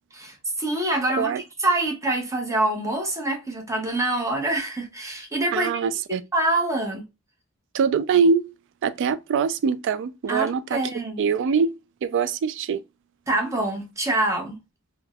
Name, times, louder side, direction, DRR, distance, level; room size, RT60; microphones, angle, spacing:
voice 1, 0.2-5.7 6.1-7.0 10.3-11.3 13.3-14.6, right 2 dB, 15° right, 0.8 m, -25 dB
voice 2, 5.5-6.2 7.7-8.5 8.8-10.8 11.2-12.8, right 5 dB, 60° right, 0.3 m, -23 dB
3.2 x 2.1 x 2.2 m
head